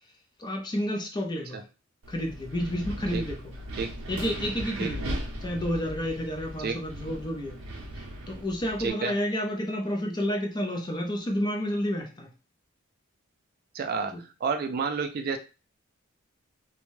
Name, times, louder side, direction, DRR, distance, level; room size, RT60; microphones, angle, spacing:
voice 1, 0.4-1.6 2.1-3.4 4.1-5.1 5.4-7.6 8.0-12.3 14.1-14.2, equal, 20° left, 2 dB, 0.5 m, -30 dB
Wind, 2.0-8.9, right 1 dB, 85° right, 0.6 m, -38 dB
voice 2, 8.8-9.1 13.7-14.1 14.4-15.4, right 5 dB, 45° right, 7 dB, 0.3 m, -29 dB
2.6 x 2.2 x 3.0 m, 0.32 s
head